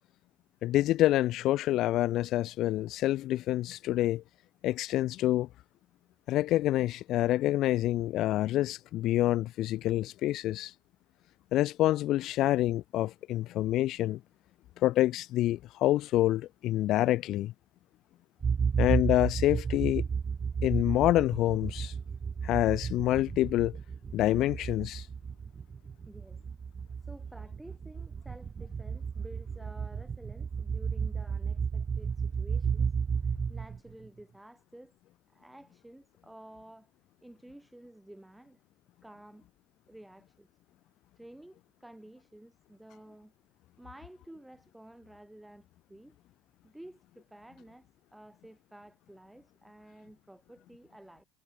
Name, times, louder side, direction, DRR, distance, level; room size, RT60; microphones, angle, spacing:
voice 1, 0.6-4.2 4.6-5.5 6.3-10.7 11.5-14.2 14.8-17.5 18.8-20.1 20.6-21.9 22.4-23.8 24.1-25.1, left 15 dB, 55° left, 0.8 m, -27 dB
sound 1, 18.4-34.1, right 6 dB, 30° right, 0.6 m, -33 dB
voice 2, 26.1-26.4 27.0-32.9 33.2-34.9 35.3-36.9 37.2-38.6 39.0-39.5 39.9-40.5 41.2-43.3 43.8-46.2 46.6-51.3, right 1 dB, 5° right, 5.8 m, -52 dB
supercardioid pair, 95°, 0 cm